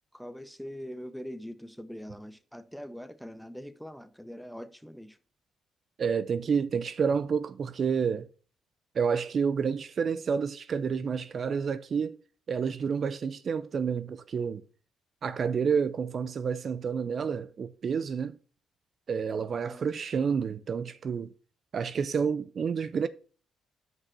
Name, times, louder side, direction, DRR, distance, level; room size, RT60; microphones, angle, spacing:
voice 1, 0.1-5.2 19.6-19.9, equal, ahead, 0.7 m, -43 dB
voice 2, 6.0-8.3 9.0-12.2 12.5-14.6 15.2-18.4 19.1-21.3 21.7-23.1, right 6 dB, 50° right, 0.5 m, -29 dB
6.2 x 5.2 x 5.8 m
cardioid pair, 90°, 0 cm